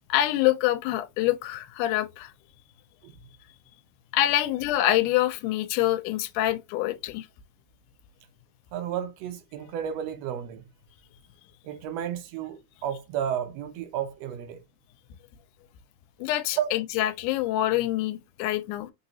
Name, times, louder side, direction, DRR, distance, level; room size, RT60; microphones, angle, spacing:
voice 1, 0.1-2.3 4.1-7.3 16.2-18.9, left 14 dB, 85° left, 2.0 m, -25 dB
voice 2, 8.7-10.6 11.6-14.6 16.6-16.7, right 9 dB, 80° right, 1.5 m, -32 dB
4.1 x 3.9 x 2.7 m
omnidirectional pair, 3.5 m